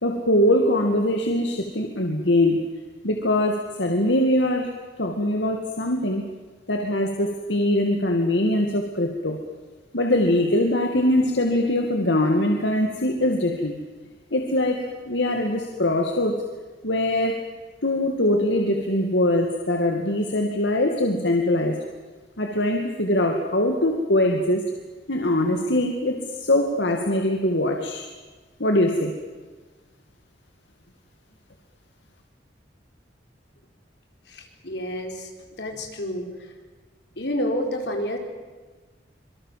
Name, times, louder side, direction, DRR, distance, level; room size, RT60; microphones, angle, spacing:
voice 1, 0.0-2.6 3.0-4.7 5.0-6.3 6.7-9.4 9.9-13.8 14.3-16.4 16.8-17.4 17.8-21.8 22.4-24.7 25.1-28.0 28.6-29.1, left 1 dB, 85° left, 3 dB, 2.3 m, -22 dB
voice 2, 34.3-35.3 35.6-36.5 37.2-38.2, equal, 70° left, 3 dB, 4.5 m, -29 dB
26.0 x 24.0 x 7.6 m, 1.3 s
head